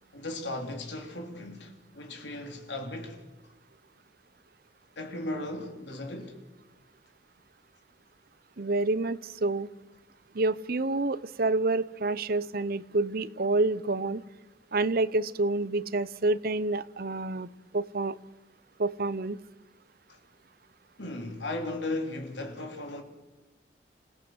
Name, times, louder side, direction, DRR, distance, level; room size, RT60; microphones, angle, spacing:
voice 1, 0.1-3.2 5.0-6.4 20.1-20.2 21.0-23.0, left 2 dB, 80° left, 3.6 m, -36 dB
voice 2, 8.6-9.7 10.3-14.2 14.7-17.5 17.7-18.2 18.8-19.4, right 2 dB, 55° right, 0.7 m, -28 dB
27.0 x 16.5 x 8.1 m
head